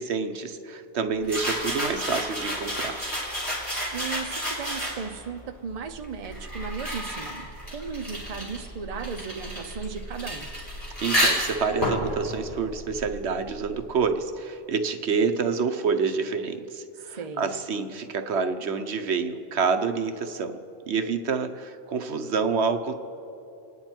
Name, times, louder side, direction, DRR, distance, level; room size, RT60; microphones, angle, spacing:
voice 1, 0.0-3.0 11.0-20.5 20.9-22.9, right 5 dB, 65° right, 8 dB, 1.1 m, -27 dB
sound 1, 1.2-5.3 6.0-13.4, equal, 15° left, 4.7 m, -30 dB
voice 2, 3.9-10.5 17.1-17.5, right 5 dB, 35° right, 5 dB, 0.7 m, -36 dB
28.5 x 9.8 x 4.4 m, 2.9 s
omnidirectional pair, 1.2 m